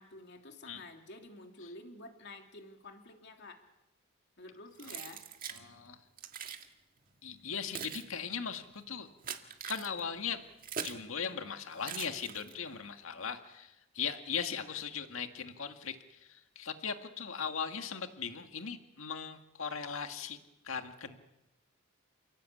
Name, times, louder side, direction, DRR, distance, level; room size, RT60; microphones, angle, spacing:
voice 1, 0.0-3.6 4.4-5.2 14.5-14.8, left 2 dB, 55° left, 4 dB, 3.0 m, -50 dB
Keys jangling, 4.8-5.6 6.2-6.7 7.4-11.1 11.8-12.7, right 7 dB, 40° right, 1.8 m, -43 dB
voice 2, 5.5-6.0 7.2-9.1 9.7-10.4 10.8-20.4 20.6-21.2, left 6 dB, 75° left, 6 dB, 1.9 m, -39 dB
29.0 x 17.0 x 8.5 m, 0.94 s
head